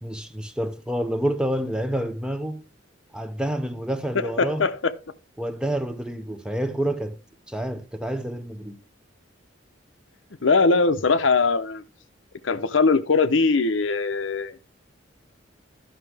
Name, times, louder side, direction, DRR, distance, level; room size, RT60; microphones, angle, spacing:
voice 1, 0.0-2.6 3.1-4.7 5.4-7.2 7.5-8.8, right 1 dB, 5° right, 0.6 m, -28 dB
voice 2, 4.4-4.9 10.4-11.8 12.4-14.6, left 4 dB, 85° left, 0.8 m, -21 dB
13.0 x 5.9 x 3.4 m
head